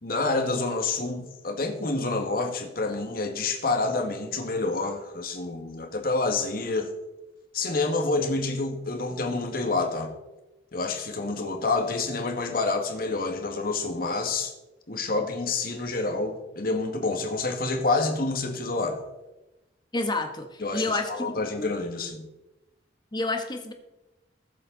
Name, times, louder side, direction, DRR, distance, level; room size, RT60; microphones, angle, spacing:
voice 1, 0.0-6.9 7.5-10.1 10.7-14.5 14.9-19.0 20.6-22.3, left 3 dB, 55° left, 4 dB, 1.9 m, -28 dB
voice 2, 19.9-21.1 21.6-21.7 23.1-23.7, left 2 dB, 25° left, 5 dB, 1.4 m, -29 dB
21.0 x 7.5 x 4.0 m, 1.0 s
head